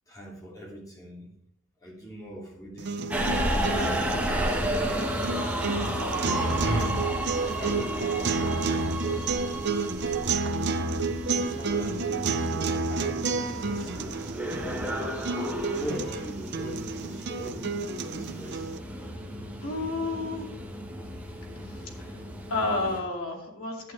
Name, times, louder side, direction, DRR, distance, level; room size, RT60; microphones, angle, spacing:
voice 1, 0.1-1.3 1.8-3.1 4.2-5.2 6.1-7.0 7.3-9.5 11.3-14.4 15.7-18.7 19.3-19.4, equal, 15° left, 2.9 m, -39 dB
sound 1, 2.8-18.8, right 4 dB, 50° right, 0.7 m, -31 dB
Subway metro underground, 3.1-23.0, right 1 dB, 5° right, 1.6 m, -33 dB
voice 2, 19.6-20.5 22.5-23.9, left 2 dB, 75° left, 2.5 m, -30 dB
11.5 x 9.1 x 3.5 m
head